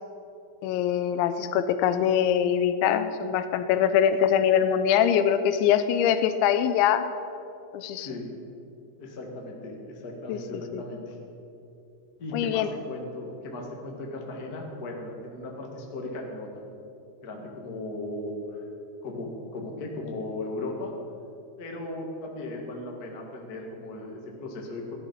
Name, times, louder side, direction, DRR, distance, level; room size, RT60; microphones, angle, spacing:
voice 1, 0.6-7.1 7.7-8.1 10.3-10.4 10.7-10.8 12.3-12.7, left 9 dB, 90° left, 10 dB, 3.1 m, -23 dB
voice 2, 7.9-8.2 9.0-11.2 12.2-16.8 17.2-18.6 19.0-20.9 21.6-24.9, left 2 dB, 55° left, 0 dB, 1.0 m, -37 dB
16.0 x 11.5 x 5.6 m, 2.7 s
omnidirectional pair, 5.2 m